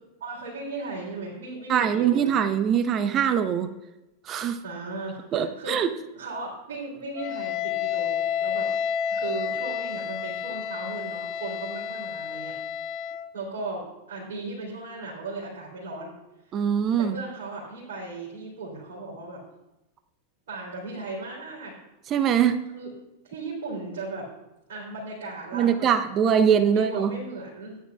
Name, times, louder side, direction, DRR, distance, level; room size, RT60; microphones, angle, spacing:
voice 1, 0.2-2.3 4.6-5.8 6.1-8.7 9.1-12.6 13.3-16.1 16.4-16.7 17.0-19.4 20.5-21.8 22.7-22.9 23.2-24.3 24.7-25.9 26.7-27.8, right 2 dB, 55° right, -7 dB, 3.3 m, -36 dB
voice 2, 1.7-3.7 4.3-4.6 5.3-5.9 16.5-17.2 22.1-22.6 25.5-27.1, right 8 dB, 30° right, 11 dB, 0.6 m, -22 dB
Wind instrument woodwind instrument, 7.2-13.3, left 8 dB, 40° left, 0.4 m, -30 dB
14.0 x 9.4 x 2.4 m, 0.97 s
figure-of-eight pair, 90°, 0 cm